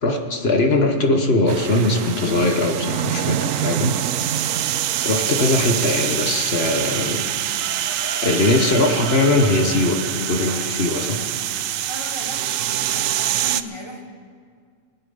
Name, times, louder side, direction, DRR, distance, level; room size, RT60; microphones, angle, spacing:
voice 1, 0.0-3.9 5.0-7.3 8.2-11.2, left 2 dB, 50° left, 4 dB, 1.4 m, -20 dB
sound 1, 1.5-13.6, right 11 dB, 75° right, 1.0 m, -25 dB
sound 2, 7.6-9.7, right 1 dB, 15° left, 1.7 m, -37 dB
voice 2, 11.9-14.2, equal, 20° right, 1 dB, 1.1 m, -37 dB
23.5 x 9.0 x 5.4 m, 2.1 s
omnidirectional pair, 1.4 m